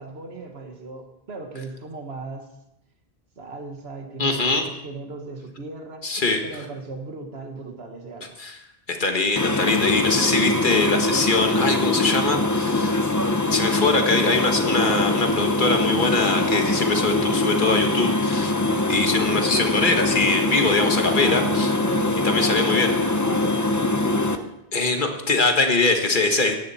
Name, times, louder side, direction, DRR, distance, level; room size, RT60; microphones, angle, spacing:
voice 1, 0.0-2.5 3.4-6.1 6.4-8.4 21.1-23.6, right 3 dB, 85° right, 4 dB, 1.8 m, -37 dB
voice 2, 4.2-4.7 6.0-6.4 8.4-8.6 8.9-13.0 13.5-18.5 18.9-21.7 22.2-22.9 24.7-26.5, left 3 dB, 55° left, 4 dB, 1.7 m, -22 dB
sound 1, 9.4-24.4, left 2 dB, 20° left, 0.8 m, -23 dB
16.0 x 11.0 x 4.3 m, 0.85 s
omnidirectional pair, 1.0 m